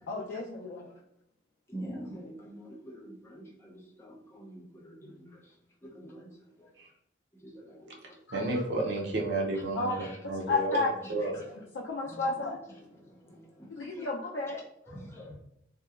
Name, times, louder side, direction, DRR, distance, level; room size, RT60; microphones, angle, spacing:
voice 1, 0.1-0.9 5.0-5.1 8.3-8.4 9.7-10.0 10.5-10.9 11.2-12.6 13.8-15.0, left 3 dB, 90° left, -3 dB, 0.4 m, -33 dB
voice 2, 1.7-5.3 5.8-6.3 7.4-7.9 12.1-12.2 13.3-13.7 14.9-15.3, right 1 dB, 15° left, -5 dB, 0.5 m, -45 dB
voice 3, 8.3-9.9 10.3-11.3, right 2 dB, 75° right, 0 dB, 0.6 m, -31 dB
2.8 x 2.2 x 2.3 m, 0.75 s
head